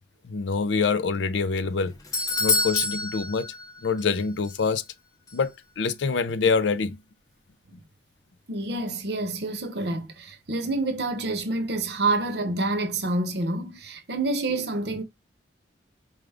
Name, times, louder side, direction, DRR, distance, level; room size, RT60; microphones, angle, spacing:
voice 1, 0.3-1.9 2.4-3.5 3.8-4.8 5.3-7.0, left 5 dB, 80° left, 0.5 m, -25 dB
Doorbell, 1.6-4.2 4.4-4.5 5.3-5.4, left 3 dB, 20° left, 0.6 m, -27 dB
voice 2, 8.5-15.0, right 2 dB, 65° right, 0.8 m, -28 dB
4.9 x 2.3 x 3.4 m
head